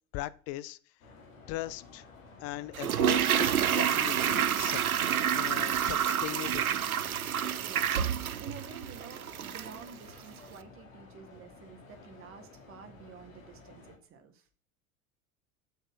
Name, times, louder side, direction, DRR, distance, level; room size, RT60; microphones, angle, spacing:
voice 1, 0.1-0.8 1.5-2.0 2.4-4.8 5.3-6.7, left 15 dB, 35° left, 0.6 m, -39 dB
sound 1, 1.0-14.0, left 3 dB, 65° left, 2.6 m, -53 dB
Toilet flush, 2.7-9.8 10.1-10.2, right 9 dB, 80° right, 0.6 m, -28 dB
voice 2, 7.6-8.0 8.4-14.4, right 6 dB, 30° right, 1.8 m, -49 dB
7.1 x 6.2 x 7.4 m
figure-of-eight pair, 75°, 42 cm